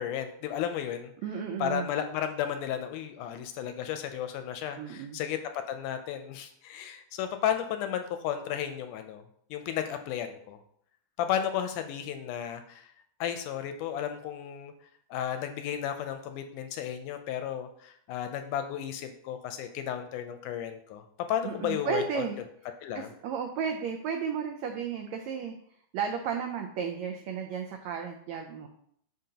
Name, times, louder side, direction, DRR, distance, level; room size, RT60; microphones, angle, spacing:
voice 1, 0.0-1.1 1.6-5.4 5.7-9.2 9.5-10.6 11.2-12.9 13.2-14.7 15.1-21.0 21.3-22.2 22.8-23.1, left 9 dB, 80° left, 8 dB, 1.9 m, -33 dB
voice 2, 1.2-1.9 4.8-5.2 21.4-22.4 22.9-25.5 25.9-28.7, right 6 dB, 85° right, 4 dB, 1.5 m, -33 dB
10.5 x 3.9 x 2.8 m, 0.67 s
omnidirectional pair, 3.8 m